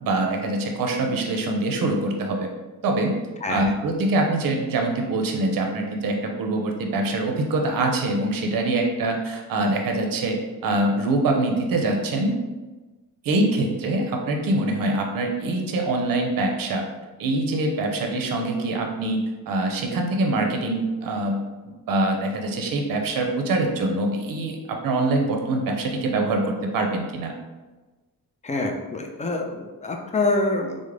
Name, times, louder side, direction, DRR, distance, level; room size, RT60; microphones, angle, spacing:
voice 1, 0.0-2.5 2.8-3.2 3.5-10.4 10.6-12.3 13.2-16.8 17.2-19.2 19.5-27.3, right 2 dB, 60° right, 3 dB, 0.6 m, -24 dB
voice 2, 3.4-3.7 28.4-30.9, left 2 dB, 20° left, 2 dB, 0.3 m, -26 dB
3.6 x 2.1 x 3.2 m, 1.2 s
cardioid pair, 110°, 39 cm